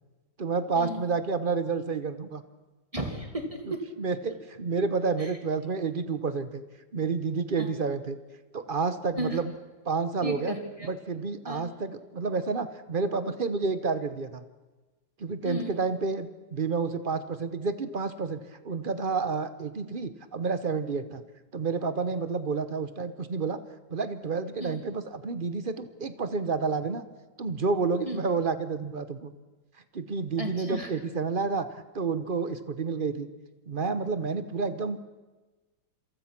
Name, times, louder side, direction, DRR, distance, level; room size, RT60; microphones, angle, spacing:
voice 1, 0.4-2.4 4.0-6.6 6.9-8.2 8.5-9.5 9.8-10.5 10.9-14.4 15.2-21.2 21.5-23.6 23.9-27.0 27.4-29.3 29.9-33.3 33.7-35.0, right 4 dB, 35° right, 12 dB, 0.9 m, -30 dB
voice 2, 2.9-3.8 5.2-5.3 7.6-7.7 9.2-9.4 10.2-10.9 11.4-11.7 15.4-15.7 24.6-24.8 28.0-28.2 30.4-30.9, equal, 15° right, 4 dB, 2.3 m, -34 dB
27.5 x 23.0 x 6.1 m, 1.2 s
omnidirectional pair, 2.2 m